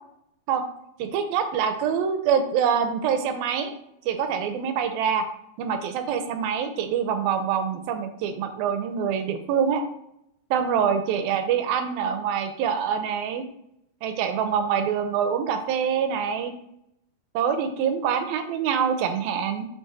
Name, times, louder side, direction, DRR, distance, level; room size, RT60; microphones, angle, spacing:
voice 1, 1.0-3.7 4.1-5.3 5.6-9.8 10.5-13.4 14.0-16.5 17.3-19.7, right 7 dB, 80° right, 7 dB, 2.4 m, -25 dB
9.3 x 3.5 x 6.1 m, 0.77 s
omnidirectional pair, 4.4 m